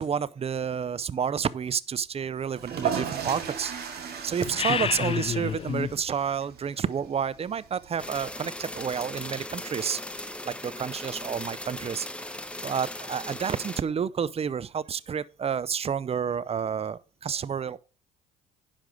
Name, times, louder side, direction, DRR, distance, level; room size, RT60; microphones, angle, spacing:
voice 1, 0.0-12.3 12.6-17.8, right 7 dB, 35° right, 0.6 m, -30 dB
sound 1, 2.5-9.3, right 7 dB, 60° right, 2.3 m, -37 dB
sound 2, 4.4-6.0, left 7 dB, 30° left, 0.5 m, -29 dB
sound 3, 8.0-13.8, left 1 dB, 5° left, 1.0 m, -38 dB
10.5 x 5.4 x 5.0 m
hypercardioid pair, 60°, 19 cm